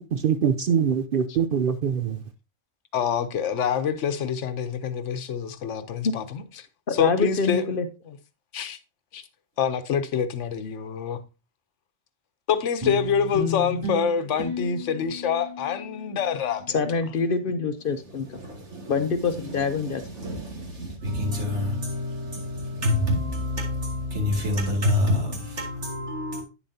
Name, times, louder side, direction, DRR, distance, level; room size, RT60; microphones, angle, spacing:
voice 1, 0.0-2.2, right 7 dB, 60° right, 0.6 m, -24 dB
voice 2, 2.9-7.7 8.1-8.2 8.5-8.8 9.1-9.2 9.6-11.2 12.5-16.8, left 7 dB, 85° left, 1.1 m, -26 dB
voice 3, 6.9-7.9 16.7-18.4 18.9-20.0, left 5 dB, 55° left, 0.8 m, -25 dB
sound 1, 12.8-17.4, left 2 dB, 20° right, 3.0 m, -34 dB
voice 4, 18.3-18.9 19.5-26.4, left 1 dB, 75° right, 2.7 m, -27 dB
9.1 x 7.0 x 2.7 m
omnidirectional pair, 1.2 m